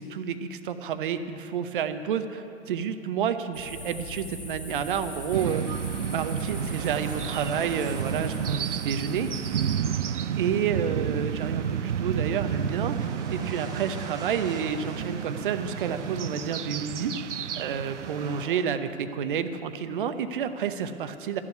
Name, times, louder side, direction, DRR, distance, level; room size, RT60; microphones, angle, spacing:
voice 1, 0.0-0.4 0.7-5.7 6.1-9.3 10.4-17.1 17.6-21.4, right 7 dB, 45° right, 10 dB, 0.9 m, -30 dB
sound 1, 3.5-9.8, left 1 dB, 5° left, 1.6 m, -42 dB
sound 2, 4.7-18.6, right 3 dB, 10° right, 0.9 m, -44 dB
sound 3, 5.3-18.4, right 8 dB, 80° right, 0.5 m, -31 dB
13.5 x 7.4 x 9.5 m, 2.8 s
figure-of-eight pair, 115°, 35 cm